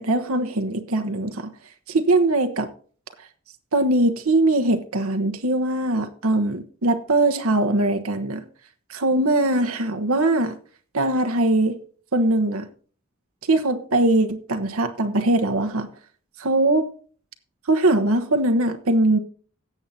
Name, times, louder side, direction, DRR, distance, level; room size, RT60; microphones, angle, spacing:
voice 1, 0.0-1.5 1.9-2.7 3.7-8.4 8.9-10.6 10.9-11.8 12.1-12.7 13.5-15.9 16.4-16.9 17.7-19.2, right 2 dB, 85° right, 1.1 m, -21 dB
17.5 x 7.2 x 2.8 m
head